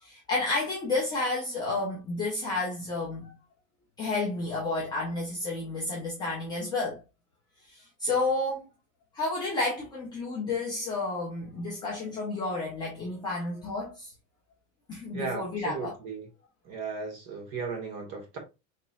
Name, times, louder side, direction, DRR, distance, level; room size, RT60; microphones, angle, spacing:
voice 1, 0.0-3.3 4.0-7.0 7.7-8.7 9.1-14.1 14.9-15.9, left 2 dB, 10° left, 0.3 m, -31 dB
voice 2, 15.1-16.3 16.6-18.4, right 4 dB, 40° right, 1.2 m, -36 dB
4.0 x 2.9 x 2.3 m
supercardioid pair, 175°, 40 cm